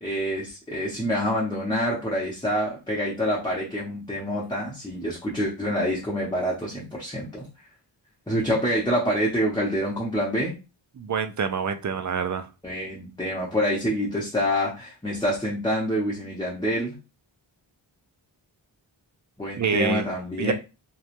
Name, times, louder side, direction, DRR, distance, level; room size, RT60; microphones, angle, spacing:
voice 1, 0.0-7.5 8.3-10.6 12.6-17.0 19.4-20.5, equal, 10° left, -5 dB, 0.8 m, -26 dB
voice 2, 11.0-12.5 19.6-20.0 20.4-20.5, right 6 dB, 40° right, 8 dB, 0.4 m, -26 dB
3.0 x 2.3 x 2.5 m, 0.29 s
wide cardioid pair, 65°, 46 cm